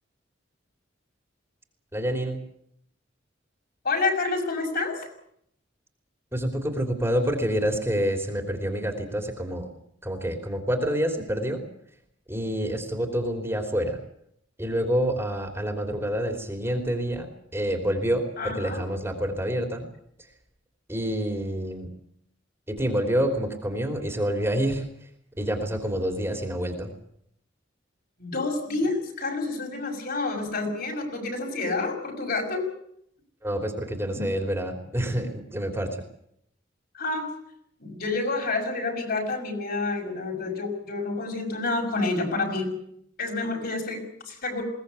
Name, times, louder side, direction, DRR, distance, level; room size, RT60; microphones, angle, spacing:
voice 1, 1.9-2.4 6.3-9.7 10.0-11.6 12.3-14.0 14.6-19.9 20.9-21.9 22.7-24.8 25.4-26.9 33.4-36.0, equal, 15° right, 3 dB, 3.2 m, -27 dB
voice 2, 3.8-5.1 18.4-18.8 28.2-32.7 36.9-37.3 37.8-42.7 43.2-44.6, left 3 dB, 55° left, 1 dB, 6.2 m, -28 dB
21.5 x 18.5 x 8.3 m, 0.72 s
head